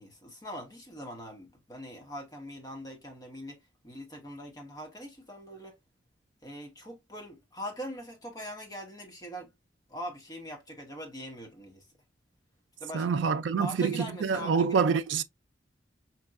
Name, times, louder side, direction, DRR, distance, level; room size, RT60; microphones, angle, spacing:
voice 1, 0.0-5.7 6.4-9.5 9.9-11.9 12.8-13.1 13.6-14.9, equal, 20° left, 1.0 m, -42 dB
voice 2, 12.9-15.2, right 5 dB, 85° right, 0.4 m, -26 dB
5.1 x 2.8 x 2.4 m
head